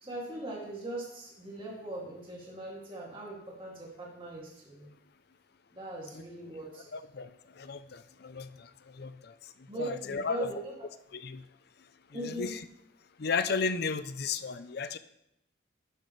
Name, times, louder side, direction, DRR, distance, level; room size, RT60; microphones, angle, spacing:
voice 1, 0.0-4.9 5.7-6.9 9.7-10.7 12.1-12.5, right 1 dB, 25° right, -4 dB, 2.5 m, -40 dB
voice 2, 6.7-10.5 11.1-11.4 12.1-12.6 13.2-15.0, left 5 dB, 50° left, 12 dB, 0.5 m, -35 dB
12.0 x 9.0 x 3.2 m, 0.80 s
head